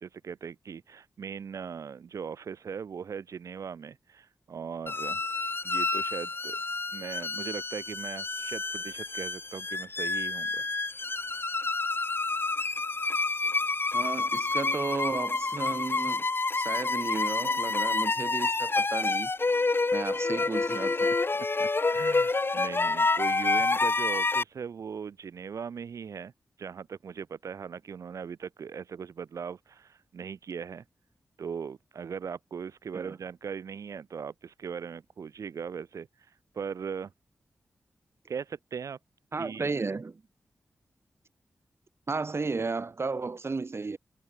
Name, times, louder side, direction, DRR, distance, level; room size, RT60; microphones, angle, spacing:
voice 1, 0.0-5.2 5.6-6.6 6.9-10.6 21.3-26.3 26.6-30.8 31.4-36.1 36.5-37.1 38.3-39.0 39.4-39.7, right 6 dB, 80° right, 2.0 m, -39 dB
sound 1, 4.9-24.4, left 3 dB, 45° left, 3.0 m, -28 dB
voice 2, 13.9-16.2 16.5-19.3 19.9-21.1 32.9-33.2 39.3-40.2 42.1-44.0, right 4 dB, 50° right, 8.0 m, -33 dB
cardioid pair, 45°, 5 cm